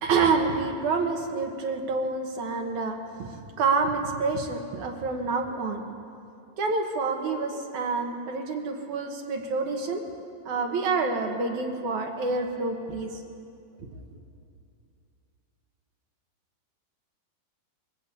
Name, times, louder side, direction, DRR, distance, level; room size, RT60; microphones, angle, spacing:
voice 1, 0.0-5.8 6.6-10.1 10.4-13.2, right 4 dB, 60° right, 4 dB, 2.6 m, -28 dB
22.5 x 16.5 x 8.4 m, 2.5 s
omnidirectional pair, 4.5 m